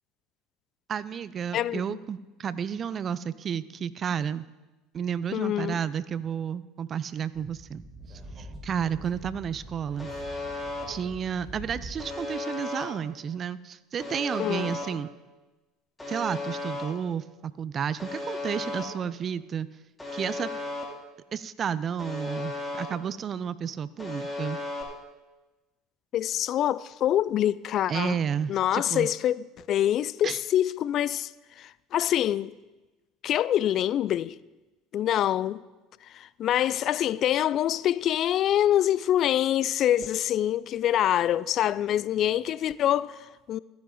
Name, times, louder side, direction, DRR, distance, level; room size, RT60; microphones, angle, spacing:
voice 1, 0.9-4.5 4.9-7.8 8.4-10.1 10.9-15.1 16.1-19.7 20.1-20.5 21.3-24.6 27.9-29.1 30.2-30.4, right 7 dB, 40° right, 0.5 m, -31 dB
voice 2, 1.5-2.0 5.3-5.8 14.4-14.8 26.1-28.2 28.5-31.3 31.6-32.5 33.2-34.4 34.9-35.6 36.0-43.6, left 11 dB, 50° left, 0.3 m, -25 dB
Speech / Wind, 7.3-12.2, right 1 dB, 25° right, 5.0 m, -44 dB
Alarm, 10.0-10.8 12.0-12.8 14.0-14.8 16.0-16.8 18.0-18.8 20.0-20.8 22.0-22.8 24.0-24.8, left 2 dB, 15° left, 3.1 m, -34 dB
14.0 x 10.0 x 3.9 m
hypercardioid pair, 70°, 0 cm